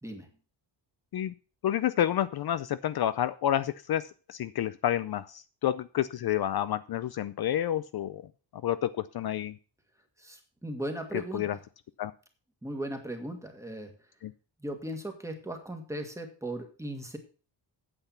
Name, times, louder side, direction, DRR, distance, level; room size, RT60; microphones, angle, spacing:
voice 1, 1.6-4.0 4.3-8.2 8.6-9.5 11.3-11.6 12.0-12.1 14.2-14.3, left 11 dB, 55° left, 14 dB, 0.5 m, -29 dB
voice 2, 10.2-11.6 12.6-13.9 14.6-17.2, right 1 dB, 5° right, 5 dB, 1.8 m, -37 dB
9.0 x 8.1 x 5.7 m, 0.37 s
wide cardioid pair, 165°, 45 cm